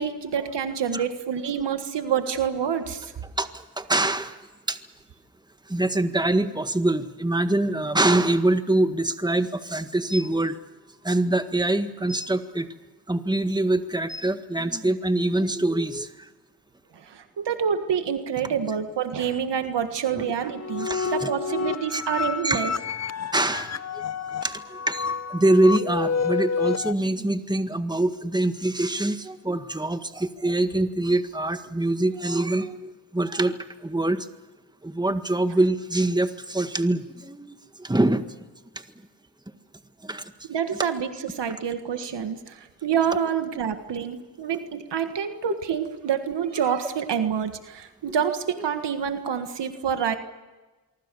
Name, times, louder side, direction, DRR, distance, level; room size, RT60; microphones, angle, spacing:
voice 1, 0.0-3.1 16.9-22.7 40.5-50.2, right 7 dB, 85° right, 8 dB, 1.7 m, -27 dB
voice 2, 3.8-4.4 4.7-4.8 5.7-10.6 11.0-12.7 13.1-16.1 20.1-20.2 20.8-21.3 21.9-22.0 22.4-22.7 23.3-23.8 24.4-33.6 33.8-34.3 34.8-38.4 40.0-40.2, right 2 dB, 10° right, 9 dB, 1.7 m, -24 dB
sound 1, 20.4-26.9, left 5 dB, 40° left, 0.8 m, -29 dB
25.0 x 24.0 x 6.9 m, 1.2 s
cardioid pair, 60°, 41 cm